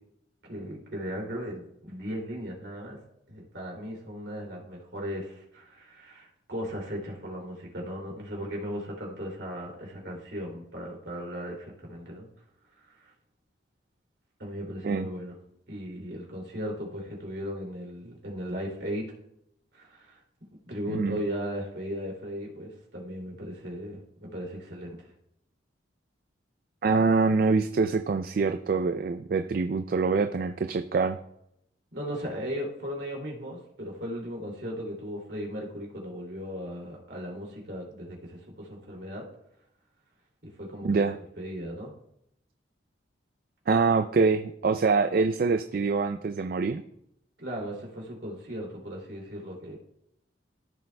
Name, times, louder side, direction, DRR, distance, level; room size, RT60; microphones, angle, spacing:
voice 1, 0.5-3.0 3.3-12.3 12.9-13.1 14.4-15.3 15.7-19.1 19.7-20.2 20.7-25.1 31.9-39.2 40.6-40.9 41.4-41.9 47.4-49.8, equal, 65° right, -1 dB, 2.6 m, -37 dB
voice 2, 20.9-21.2 26.8-31.2 40.8-41.2 43.7-46.8, right 4 dB, 50° right, 8 dB, 0.3 m, -25 dB
14.5 x 6.5 x 2.2 m, 0.77 s
head